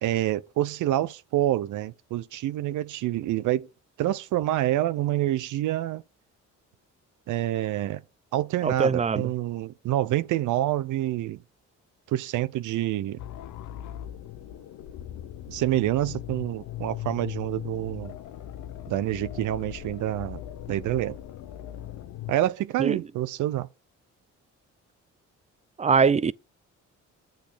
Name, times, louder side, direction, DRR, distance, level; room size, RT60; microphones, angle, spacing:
voice 1, 0.0-3.7 4.0-6.0 7.3-8.0 8.3-11.4 12.1-13.2 15.5-18.1 18.9-20.4 20.7-21.2 22.3-23.7, right 14 dB, 80° right, 0.7 m, -27 dB
voice 2, 8.6-9.3 22.8-23.0 25.8-26.3, right 5 dB, 25° right, 0.5 m, -22 dB
sound 1, 13.2-22.3, left 12 dB, 85° left, 0.9 m, -39 dB
8.3 x 3.9 x 6.8 m
cardioid pair, 90°, 30 cm